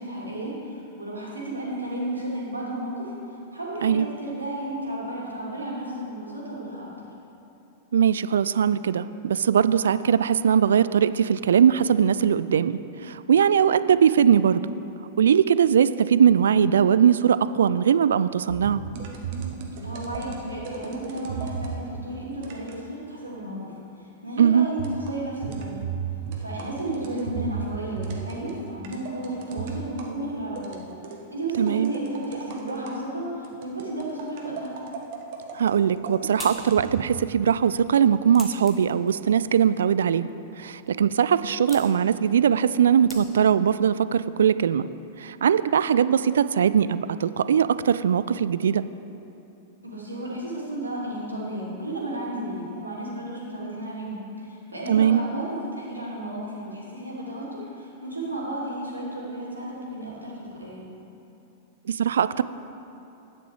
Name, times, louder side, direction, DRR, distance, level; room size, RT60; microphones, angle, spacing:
voice 1, 0.0-3.1 3.5-6.9 19.8-25.9 26.4-30.8 31.3-34.8 49.8-60.9, right 1 dB, 80° right, -5 dB, 2.8 m, -33 dB
voice 2, 7.9-12.8 13.1-14.6 15.2-18.8 24.4-24.7 31.6-31.9 35.5-40.3 40.6-44.9 45.2-48.8 54.9-55.2 61.9-62.4, right 8 dB, 65° right, 15 dB, 0.3 m, -20 dB
sound 1, 18.5-21.8 22.4-22.9 24.8-30.1 30.6-31.2 31.7-33.0 33.4-37.1, right 6 dB, 50° right, 1.4 m, -35 dB
sound 2, 35.7-43.7, left 2 dB, 15° left, 1.8 m, -47 dB
11.5 x 9.6 x 4.8 m, 3.0 s
figure-of-eight pair, 95°, 0 cm